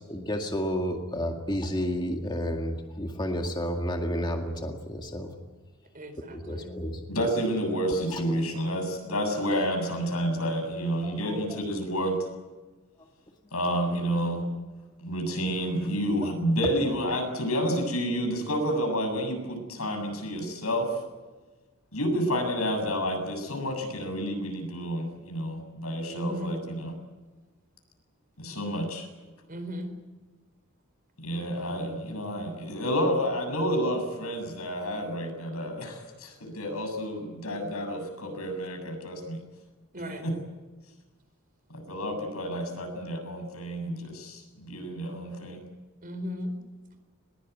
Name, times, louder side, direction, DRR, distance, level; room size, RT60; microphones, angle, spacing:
voice 1, 0.0-5.3 6.3-7.0 8.1-8.2 11.0-11.6 16.8-17.1, equal, 20° left, 3 dB, 2.0 m, -31 dB
voice 2, 5.9-6.8 26.1-26.6 29.5-29.9 39.9-40.2 46.0-46.5, equal, 40° right, 8 dB, 4.4 m, -36 dB
voice 3, 7.1-12.2 13.5-14.5 15.0-21.0 21.9-26.9 28.4-29.1 31.2-39.4 40.2-40.3 41.7-45.6, equal, 90° left, 4 dB, 7.5 m, -30 dB
22.0 x 21.5 x 9.4 m, 1.3 s
head